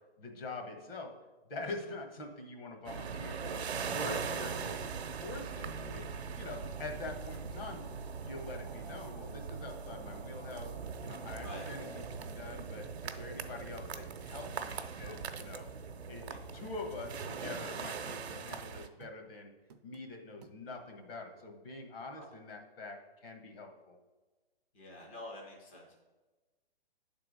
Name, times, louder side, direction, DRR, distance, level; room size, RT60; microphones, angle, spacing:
voice 1, 0.2-1.1 1.5-4.9 5.2-6.1 6.4-7.9 8.1-10.7 11.0-15.7 16.1-19.5 19.8-24.0, left 3 dB, 65° left, 3 dB, 1.5 m, -45 dB
sound 1, 2.8-18.9, right 5 dB, 85° right, 0.8 m, -41 dB
sound 2, 9.5-9.6 10.0-10.2 10.5-10.7 11.0-12.2 12.6-12.8 13.0-13.2 13.6-13.7 14.1-14.2 14.6-14.8 15.1-15.2 15.6-15.7 16.1-16.2 16.6-16.8 17.1-18.7 19.0-19.2 19.7-20.1 20.4-20.9 21.4-21.5, right 7 dB, 45° right, 0.4 m, -58 dB
voice 2, 15.1-15.4 16.2-16.4 22.2-22.3 24.7-25.9, left 1 dB, 10° left, -2 dB, 0.4 m, -48 dB
9.0 x 3.8 x 4.9 m, 1.2 s
hypercardioid pair, 155°, 31 cm